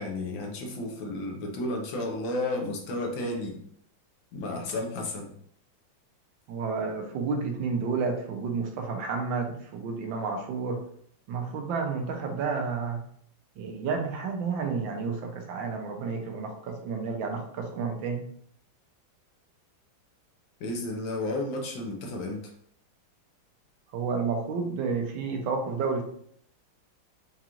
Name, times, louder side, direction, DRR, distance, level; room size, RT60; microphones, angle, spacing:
voice 1, 0.0-3.6 4.3-5.3 20.6-22.4, left 2 dB, 75° left, 1 dB, 1.4 m, -32 dB
voice 2, 6.5-10.8 11.3-13.0 13.6-18.2 23.9-26.0, right 5 dB, 80° right, 3 dB, 1.4 m, -31 dB
4.8 x 2.4 x 2.9 m, 0.64 s
omnidirectional pair, 2.1 m